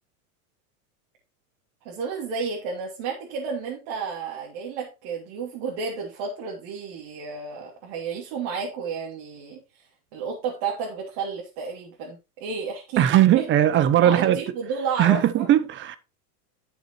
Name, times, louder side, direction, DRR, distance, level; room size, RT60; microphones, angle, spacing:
voice 1, 1.8-9.8 10.1-13.4 14.0-15.5, right 5 dB, 55° right, 3.1 m, -32 dB
voice 2, 13.0-14.4 15.0-16.0, right 12 dB, 25° right, 0.8 m, -19 dB
11.0 x 7.1 x 3.1 m
supercardioid pair, 130°, 45 cm